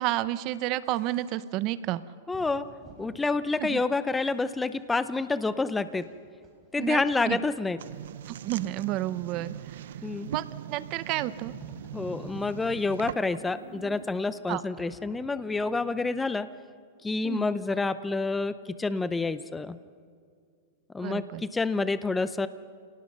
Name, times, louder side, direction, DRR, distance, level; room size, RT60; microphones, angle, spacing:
voice 1, 0.0-2.0 3.6-3.8 6.8-7.4 8.3-9.8 10.3-11.5 14.5-14.6 17.2-17.4 21.0-21.4, right 15 dB, 35° right, 15 dB, 0.8 m, -31 dB
sound 1, 0.8-1.5 2.3-3.2 3.9-4.8 5.9-7.4 8.5-9.5 10.9-11.3 12.2-14.3 14.8-15.9, right 3 dB, 20° right, 4.7 m, -52 dB
voice 2, 2.3-2.7 3.0-6.1 6.7-7.8 10.0-10.3 11.9-16.5 17.0-19.8 20.9-22.5, left 3 dB, 10° left, 14 dB, 0.6 m, -28 dB
sound 2, 7.8-13.5, right 11 dB, 75° right, 0.6 m, -40 dB
29.0 x 18.5 x 5.4 m, 2.2 s
supercardioid pair, 155°, 0 cm